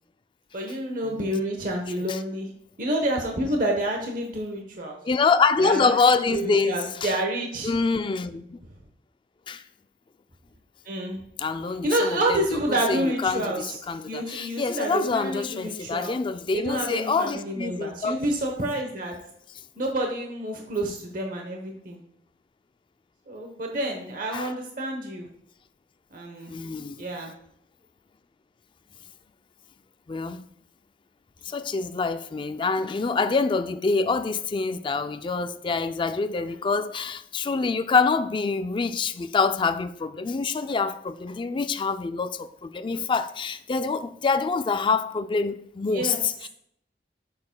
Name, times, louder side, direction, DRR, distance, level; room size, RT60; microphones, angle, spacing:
voice 1, 0.5-2.5 2.8-5.0 5.6-7.8 10.8-11.2 11.8-13.8 14.1-16.1 16.5-19.1 19.8-22.0 23.3-25.3 26.1-26.6 27.0-27.3 45.9-46.2, right 1 dB, 50° right, 1.0 m, -28 dB
voice 2, 5.1-7.1 7.6-8.6 9.5-9.6 11.4-18.2 24.3-24.5 26.5-27.1 30.1-30.4 31.4-46.5, left 4 dB, 30° left, 0.3 m, -26 dB
9.6 x 6.7 x 2.2 m
head